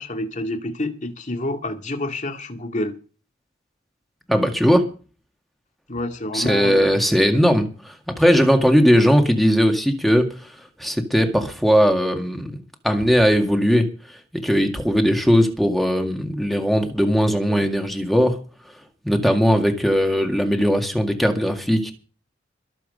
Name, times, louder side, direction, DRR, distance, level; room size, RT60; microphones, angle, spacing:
voice 1, 0.0-3.0 5.9-7.0, left 1 dB, 40° left, 2.1 m, -28 dB
voice 2, 4.3-4.9 6.3-10.3 10.8-12.6 12.8-18.4 19.0-21.9, equal, ahead, 2.0 m, -19 dB
22.5 x 7.5 x 5.3 m
head